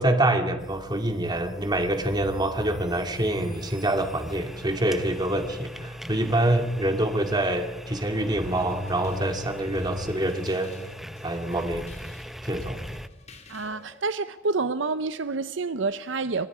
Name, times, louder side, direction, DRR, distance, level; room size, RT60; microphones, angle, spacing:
voice 1, 0.0-10.7 11.2-11.9 12.4-12.8, right 1 dB, 20° right, 2.3 m, -26 dB
sound 1, 0.6-13.1, equal, ahead, 0.7 m, -40 dB
Bowed string instrument, 8.0-11.9, left 1 dB, 45° right, 1.9 m, -39 dB
sound 2, 8.3-14.0, left 1 dB, 35° left, 2.4 m, -45 dB
voice 2, 13.5-16.5, right 3 dB, 65° right, 0.7 m, -28 dB
26.5 x 25.0 x 5.0 m
head